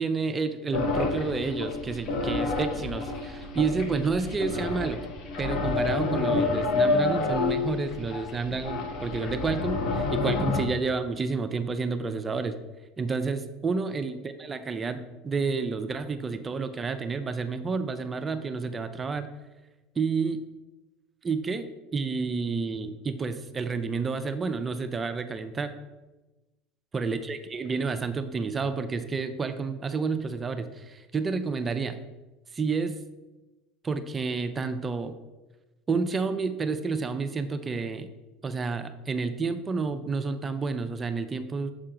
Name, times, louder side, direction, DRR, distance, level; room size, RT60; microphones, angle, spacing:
voice 1, 0.0-5.0 5.4-12.6 13.0-19.3 20.0-20.4 21.2-25.7 26.9-32.0 32.5-33.0 33.8-35.2 35.9-38.1 38.4-41.7, right 4 dB, 25° right, 9 dB, 0.4 m, -30 dB
sound 1, 0.7-10.7, left 3 dB, 55° left, 0.8 m, -29 dB
6.7 x 4.4 x 3.7 m, 1.1 s
supercardioid pair, 115°, 0 cm